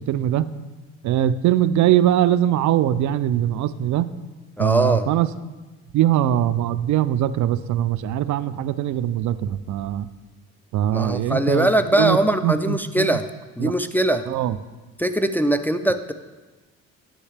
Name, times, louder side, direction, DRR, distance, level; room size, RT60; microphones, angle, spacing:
voice 1, 0.1-0.4 1.0-4.1 4.6-5.3 5.9-10.1 10.7-11.7 12.0-12.2 12.4-13.1 13.6-13.7 14.3-14.6, right 12 dB, 70° right, 14 dB, 0.4 m, -21 dB
voice 2, 4.6-5.1 10.9-13.3 13.6-14.3 15.0-16.1, right 1 dB, 5° left, 8 dB, 0.4 m, -21 dB
10.0 x 6.5 x 3.4 m, 1.2 s
cardioid pair, 90°, 30 cm